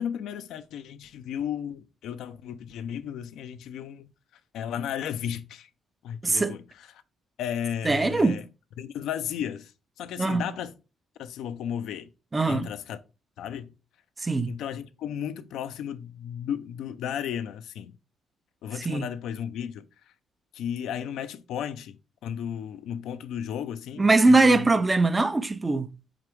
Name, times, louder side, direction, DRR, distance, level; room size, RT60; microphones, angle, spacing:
voice 1, 0.0-4.1 4.5-5.7 6.0-6.6 7.4-8.5 8.8-9.7 10.0-10.7 11.2-12.1 12.5-13.0 13.4-13.7 14.5-17.9 18.6-19.9 20.5-24.7, left 9 dB, 80° left, 0.4 m, -34 dB
voice 2, 6.2-6.6 7.8-8.4 10.2-10.4 12.3-12.7 14.2-14.5 18.9-19.0 24.0-25.9, right 3 dB, 20° right, 0.4 m, -21 dB
5.0 x 3.3 x 3.1 m
cardioid pair, 90°, 0 cm